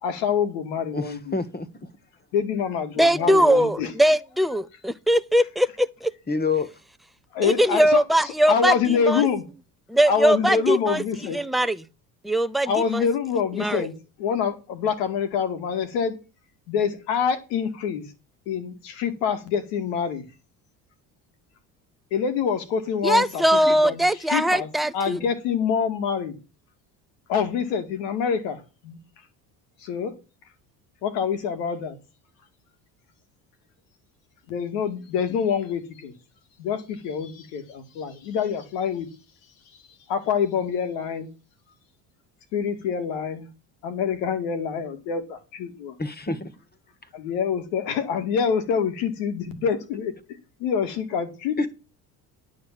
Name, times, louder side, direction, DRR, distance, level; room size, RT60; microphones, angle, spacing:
voice 1, 0.0-1.4 2.3-3.9 7.3-9.4 10.0-11.4 12.7-13.9 14.2-16.2 16.7-18.0 18.5-20.2 22.1-23.4 23.7-24.0 24.3-26.3 27.3-29.0 29.8-30.1 31.0-32.0 34.5-36.1 36.6-39.1 40.1-41.3 42.5-43.5 43.8-46.0 47.1-50.1 50.6-51.7, left 7 dB, 75° left, 2.4 m, -26 dB
voice 2, 0.9-1.9 6.3-6.7 46.0-46.5 51.6-51.7, left 4 dB, 20° left, 1.8 m, -27 dB
voice 3, 3.0-6.1 7.4-9.3 9.9-11.0 11.3-11.8 12.2-13.1 13.6-13.9 23.0-25.2, right 1 dB, ahead, 0.7 m, -21 dB
11.0 x 5.2 x 7.5 m
hypercardioid pair, 65°, 50 cm